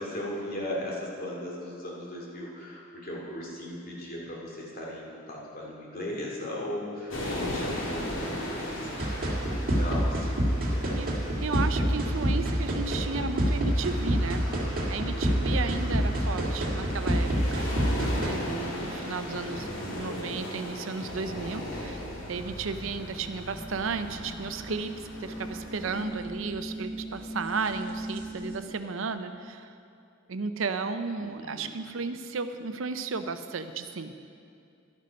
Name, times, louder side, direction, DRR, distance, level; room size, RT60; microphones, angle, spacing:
voice 1, 0.0-11.0 15.1-16.0 18.4-19.0 31.2-31.7, left 1 dB, 45° left, -3 dB, 2.5 m, -38 dB
sound 1, 7.1-26.0, left 1 dB, 75° left, 2.3 m, -38 dB
sound 2, 9.0-18.3, equal, 45° right, 1.8 m, -27 dB
voice 2, 10.9-14.4 14.9-22.0 22.3-29.7 30.3-34.1, right 4 dB, 75° right, 9 dB, 0.6 m, -34 dB
sound 3, 21.1-28.6, right 1 dB, 30° right, 2.6 m, -40 dB
11.5 x 9.9 x 5.2 m, 2.4 s
head